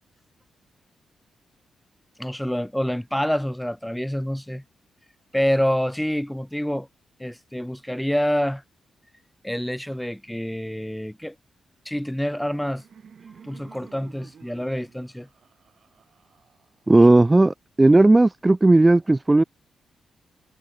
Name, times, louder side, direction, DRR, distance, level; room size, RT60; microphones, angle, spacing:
voice 1, 2.2-4.6 5.3-6.9 7.2-8.6 9.4-11.3 11.8-12.8 13.4-15.3, equal, ahead, 1.4 m, -27 dB
Laughter, 12.0-17.0, right 7 dB, 45° right, 7.5 m, -51 dB
voice 2, 16.9-19.4, right 2 dB, 15° right, 0.3 m, -15 dB
wide cardioid pair, 170°, 0 cm